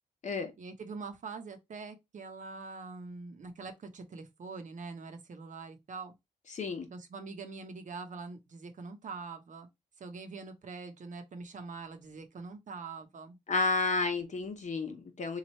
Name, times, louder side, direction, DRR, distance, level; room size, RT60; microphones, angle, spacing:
voice 1, 0.6-6.1 6.9-9.7 10.0-13.4, right 4 dB, 55° right, 0.8 m, -44 dB
voice 2, 6.5-6.9 13.5-15.4, left 3 dB, 50° left, 0.9 m, -31 dB
3.1 x 2.4 x 4.0 m
cardioid pair, 65°, 16 cm